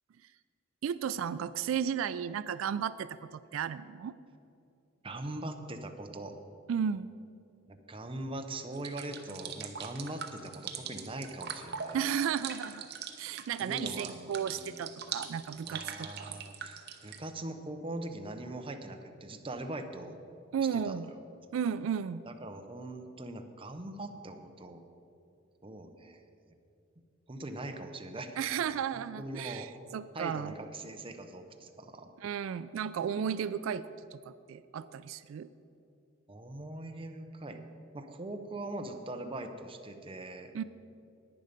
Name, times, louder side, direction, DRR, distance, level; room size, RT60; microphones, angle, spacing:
voice 1, 0.8-4.1 6.7-7.1 11.9-12.9 13.2-16.4 20.5-21.1 21.5-22.3 28.4-30.5 32.2-35.5 40.5-40.6, right 8 dB, 90° right, 15 dB, 0.3 m, -34 dB
voice 2, 5.0-6.3 7.7-12.1 13.6-15.1 15.7-20.1 20.7-21.1 22.3-24.8 25.6-26.2 27.3-28.4 29.2-29.7 30.1-32.1 36.3-37.6 37.9-40.5, right 1 dB, 25° right, 6 dB, 0.7 m, -41 dB
sound 1, 8.7-17.2, right 7 dB, 55° right, 0.9 m, -41 dB
10.5 x 9.5 x 5.1 m, 2.7 s
head